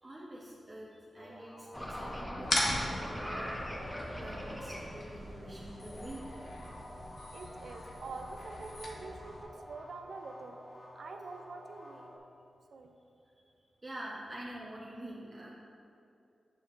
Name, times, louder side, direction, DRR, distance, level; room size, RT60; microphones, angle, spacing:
voice 1, 0.0-3.5 3.9-6.6 13.8-15.5, right 1 dB, 30° right, -6 dB, 0.8 m, -46 dB
sound 1, 1.2-2.8 4.1-12.2, left 1 dB, 45° left, 0.8 m, -52 dB
sound 2, 1.7-7.1, equal, 15° left, 0.9 m, -42 dB
sound 3, 2.4-9.4, left 1 dB, 80° left, 0.9 m, -39 dB
voice 2, 7.3-10.6 11.0-12.1 12.7-12.9, right 3 dB, 75° right, 5 dB, 0.5 m, -45 dB
9.0 x 4.9 x 2.6 m, 2.6 s
cardioid pair, 60°, 0 cm